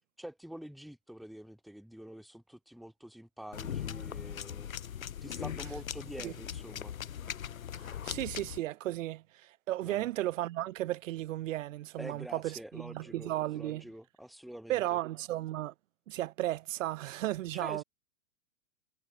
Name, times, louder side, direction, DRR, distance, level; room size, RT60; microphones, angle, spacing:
voice 1, 0.2-4.7 5.2-6.9 9.8-10.1 12.0-15.0 17.5-17.8, right 1 dB, ahead, 1.2 m, -46 dB
sound 1, 3.5-8.6, left 9 dB, 85° left, 1.6 m, -40 dB
voice 2, 7.8-13.8 14.7-15.7 16.1-17.8, right 15 dB, 65° right, 0.9 m, -35 dB
hypercardioid pair, 100°, 41 cm